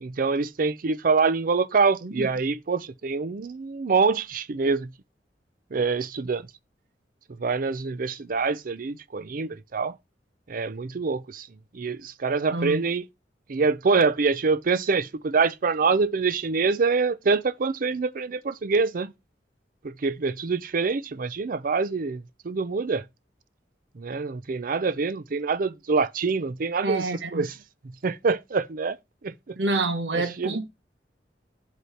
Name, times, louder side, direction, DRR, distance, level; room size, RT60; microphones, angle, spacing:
voice 1, 0.0-4.9 5.7-6.5 7.4-9.9 10.5-11.5 11.7-13.0 13.5-19.1 19.8-23.0 24.0-27.5 28.0-29.0 29.2-29.6 30.1-30.6, right 4 dB, 55° right, 0.5 m, -25 dB
voice 2, 2.0-2.3 12.5-12.9 26.8-27.5 29.6-30.7, right 2 dB, 80° right, 1.0 m, -28 dB
8.2 x 3.1 x 5.7 m
head